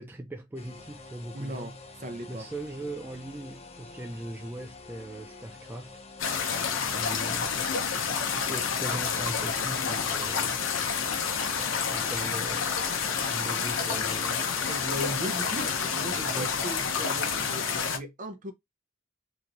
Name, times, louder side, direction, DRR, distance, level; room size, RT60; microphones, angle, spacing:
voice 1, 0.0-1.9 2.3-6.0 6.9-7.5 8.3-10.6 11.4-12.8 13.3-14.5 16.4-16.6, right 1 dB, 10° right, 0.3 m, -40 dB
sound 1, 0.6-17.9, left 3 dB, 35° left, 0.8 m, -48 dB
voice 2, 1.3-1.7 2.0-2.5 7.5-7.8 14.7-18.5, right 1 dB, 45° right, 0.7 m, -38 dB
sound 2, 6.2-18.0, left 6 dB, 80° left, 0.7 m, -29 dB
3.1 x 2.9 x 2.5 m
head